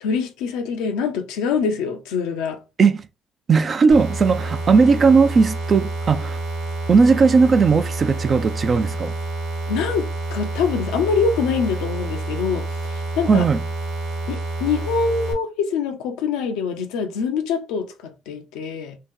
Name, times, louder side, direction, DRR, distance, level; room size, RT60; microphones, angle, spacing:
voice 1, 0.0-2.6 9.7-13.4 14.3-19.0, left 5 dB, 90° left, 0.6 m, -24 dB
voice 2, 3.5-6.4 6.9-9.1 13.3-13.7, right 5 dB, 45° right, 0.5 m, -17 dB
sound 1, 3.9-15.3, right 2 dB, 90° right, 1.2 m, -28 dB
2.8 x 2.6 x 3.7 m
supercardioid pair, 70°, 0 cm